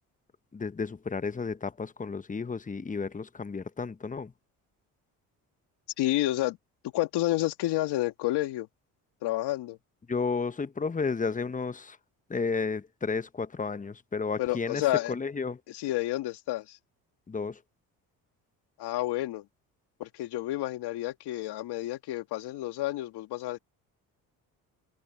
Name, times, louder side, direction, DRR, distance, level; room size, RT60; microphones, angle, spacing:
voice 1, 0.5-4.3 10.1-12.0 12.3-14.8 15.1-15.6 17.3-17.6, left 4 dB, 20° left, 1.0 m, -32 dB
voice 2, 6.0-6.6 6.8-8.7 9.2-9.8 14.4-15.1 15.7-16.8 18.8-19.5 20.0-23.6, left 16 dB, 75° left, 2.0 m, -30 dB
supercardioid pair, 65°, 40 cm